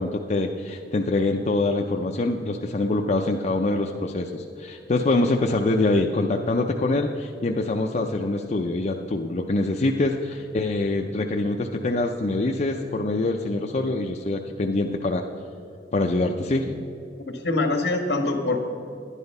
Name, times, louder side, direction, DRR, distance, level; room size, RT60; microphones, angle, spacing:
voice 1, 0.0-15.2 15.9-16.8, left 2 dB, 40° left, 1 dB, 0.5 m, -24 dB
voice 2, 17.3-18.6, left 2 dB, 70° left, 4 dB, 1.5 m, -24 dB
11.0 x 9.9 x 5.4 m, 2.5 s
head